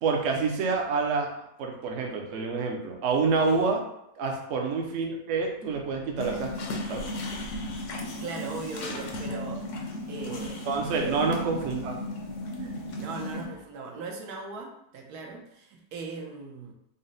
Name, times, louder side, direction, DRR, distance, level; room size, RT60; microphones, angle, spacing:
voice 1, 0.0-1.3 1.6-3.8 4.2-6.5 6.9-7.0 10.7-11.9 12.6-12.7, right 4 dB, 65° right, 1 dB, 0.8 m, -27 dB
sound 1, 6.2-13.5, left 1 dB, 60° left, 0.9 m, -35 dB
voice 2, 7.9-9.7 10.1-11.3 12.7-16.7, right 4 dB, 80° right, 1 dB, 1.2 m, -39 dB
4.0 x 2.1 x 3.8 m, 0.79 s
omnidirectional pair, 1.7 m